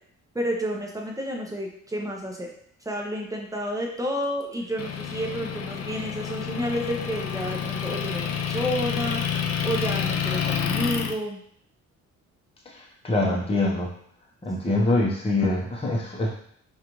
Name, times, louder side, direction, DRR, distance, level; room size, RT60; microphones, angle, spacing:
voice 1, 0.3-2.5 2.8-9.2 9.6-11.4, equal, 10° right, -1 dB, 0.8 m, -30 dB
Motor vehicle (road) / Engine, 4.8-11.1, left 8 dB, 50° left, 0.5 m, -29 dB
voice 2, 12.6-13.9 14.4-16.3, left 2 dB, 20° left, -3 dB, 0.9 m, -24 dB
4.9 x 2.5 x 3.0 m, 0.67 s
cardioid pair, 90°, 30 cm